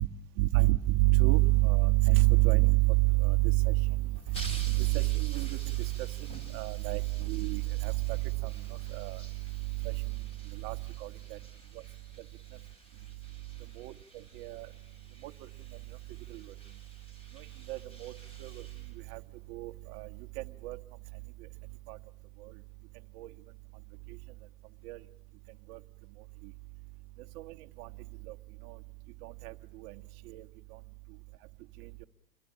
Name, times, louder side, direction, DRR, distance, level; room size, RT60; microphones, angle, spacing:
voice 1, 0.4-9.2 9.6-10.0 10.5-11.4 13.8-13.9 14.3-14.7 15.2-15.3 16.3-16.4 17.4-18.1 18.4-18.6 19.1-19.2 19.5-20.1 20.4-20.8 21.9-22.0 23.2-23.3 24.8-25.0 25.7-25.8 27.4-27.9 28.3-28.4 28.7-28.8 29.2-29.5 29.8-30.0 30.3-30.4, right 20 dB, 35° right, 1.3 m, -28 dB
sound 1, 4.1-19.5, right 2 dB, 10° left, 4.9 m, -51 dB
28.5 x 22.0 x 8.6 m
hypercardioid pair, 130°, 45 cm